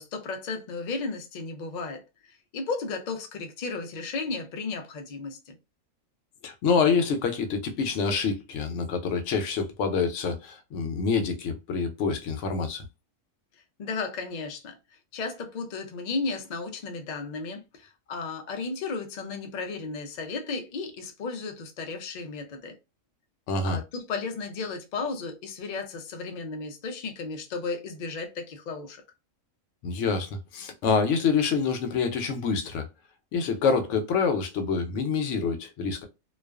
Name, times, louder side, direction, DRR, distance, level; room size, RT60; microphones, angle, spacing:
voice 1, 0.0-5.5 13.8-14.8 15.1-22.8 23.6-29.0, left 4 dB, 90° left, 0.3 m, -34 dB
voice 2, 6.4-12.9 23.5-23.8 29.8-32.9 33.3-36.0, left 5 dB, 70° left, 0.9 m, -26 dB
2.3 x 2.3 x 2.3 m
omnidirectional pair, 1.4 m